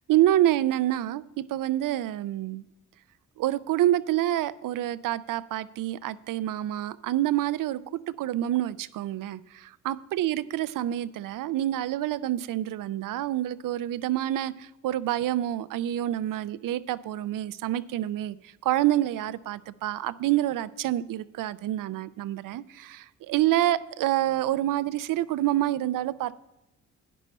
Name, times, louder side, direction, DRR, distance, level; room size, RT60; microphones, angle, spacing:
voice 1, 0.1-2.6 3.4-26.3, right 13 dB, 80° right, 0.5 m, -27 dB
11.0 x 9.4 x 4.2 m
cardioid pair, 85°, 32 cm